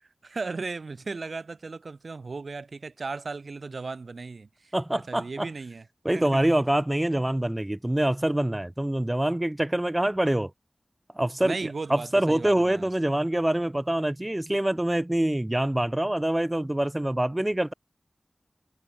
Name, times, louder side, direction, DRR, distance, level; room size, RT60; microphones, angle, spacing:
voice 1, 0.2-4.7 5.1-5.8 6.1-6.4 11.4-12.9, right 4 dB, 80° right, 1.2 m, -36 dB
voice 2, 4.7-5.5 6.0-10.5 11.1-17.7, right 1 dB, 20° right, 0.5 m, -25 dB
wide cardioid pair, 60°, 0 cm